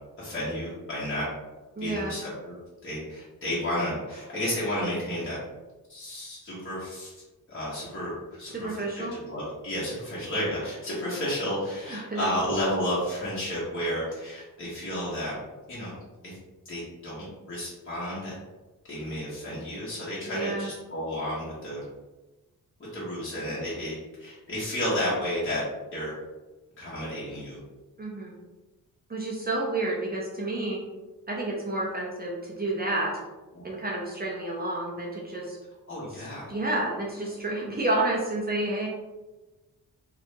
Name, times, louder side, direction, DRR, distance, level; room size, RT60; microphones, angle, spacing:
voice 1, 0.2-1.2 1.8-2.5 2.8-5.4 5.9-7.1 7.5-15.3 15.7-15.9 16.2-16.3 16.6-18.4 18.9-21.8 22.9-25.6 25.9-26.1 26.8-27.6 33.5-33.6 35.9-36.5, equal, 35° left, -9 dB, 1.4 m, -32 dB
voice 2, 1.8-2.2 8.5-9.2 11.8-12.3 20.3-20.7 28.0-28.3 29.1-30.8 31.3-33.1 33.6-35.6 36.1-38.9, right 2 dB, 25° right, -3 dB, 0.7 m, -30 dB
2.9 x 2.6 x 3.3 m, 1.1 s
cardioid pair, 60°, 37 cm